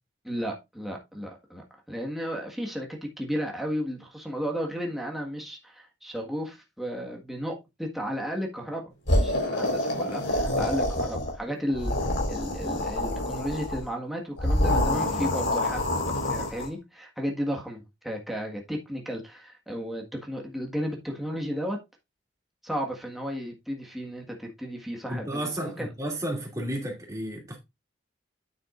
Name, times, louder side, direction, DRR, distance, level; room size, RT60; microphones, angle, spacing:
voice 1, 0.2-21.8 22.6-25.9, equal, ahead, 1.6 m, -34 dB
sound 1, 9.1-11.4 11.7-13.8 14.4-16.7, left 1 dB, 70° left, 4.3 m, -27 dB
voice 2, 25.1-27.6, right 1 dB, 15° right, 2.6 m, -32 dB
9.6 x 7.4 x 2.5 m
head